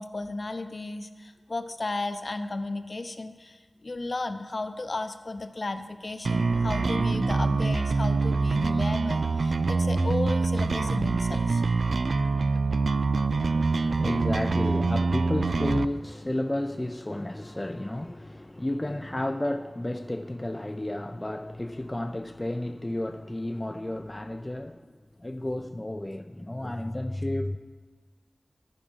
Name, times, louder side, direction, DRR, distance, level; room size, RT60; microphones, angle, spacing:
voice 1, 0.0-11.6 26.6-26.8, left 2 dB, 50° left, 0.8 m, -34 dB
sound 1, 6.2-15.8, right 3 dB, 80° right, 0.3 m, -25 dB
voice 2, 13.3-24.9 25.2-27.6, left 1 dB, 20° left, 0.5 m, -32 dB
11.5 x 9.9 x 5.5 m
wide cardioid pair, 70°, 0 cm